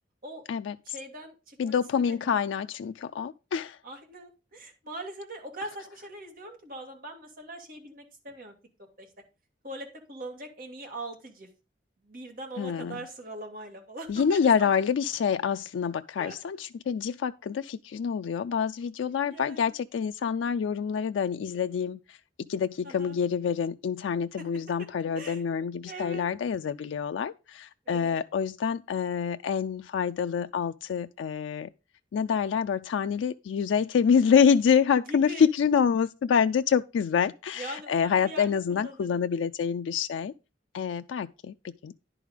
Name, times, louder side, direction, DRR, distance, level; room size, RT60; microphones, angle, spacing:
voice 1, 0.9-2.4 3.8-8.5 9.0-9.1 9.6-11.5 12.0-14.7 16.2-16.4 19.2-19.6 22.8-23.2 24.4-24.5 25.1-25.4 25.9-26.3 27.9-28.2 35.1-35.5 37.6-39.2, right 1 dB, 50° right, 2.2 m, -41 dB
voice 2, 1.6-3.8 12.6-13.0 14.1-22.2 22.5-31.7 32.1-40.3 40.7-41.5 41.8-41.9, left 7 dB, 85° left, 0.3 m, -27 dB
10.5 x 4.9 x 5.0 m
head